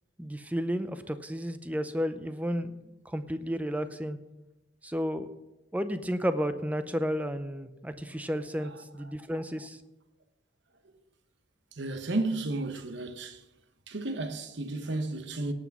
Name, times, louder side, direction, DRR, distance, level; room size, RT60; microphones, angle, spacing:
voice 1, 0.2-4.2 4.8-5.3 5.7-9.8, equal, 5° right, 0.5 m, -32 dB
voice 2, 11.7-13.4 13.9-15.5, right 2 dB, 60° right, 1.1 m, -33 dB
17.5 x 6.1 x 6.0 m
head